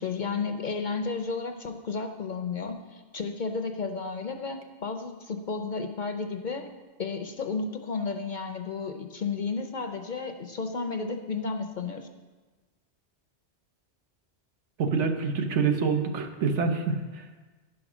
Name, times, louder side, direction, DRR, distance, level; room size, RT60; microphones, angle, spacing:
voice 1, 0.0-6.7 7.0-12.1, left 4 dB, 55° left, 6 dB, 0.6 m, -32 dB
voice 2, 14.8-17.2, right 5 dB, 80° right, 5 dB, 1.2 m, -26 dB
10.5 x 5.2 x 6.1 m, 1.3 s
omnidirectional pair, 1.2 m